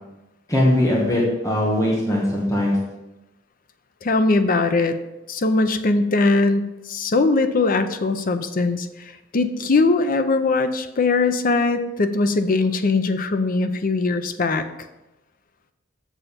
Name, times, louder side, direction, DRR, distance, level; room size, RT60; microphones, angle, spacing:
voice 1, 0.5-2.8, left 1 dB, 15° left, -3 dB, 1.4 m, -20 dB
voice 2, 4.0-5.0 5.3-8.9 9.3-14.6, left 3 dB, 45° left, 9 dB, 0.6 m, -20 dB
6.9 x 6.5 x 4.4 m, 0.99 s
head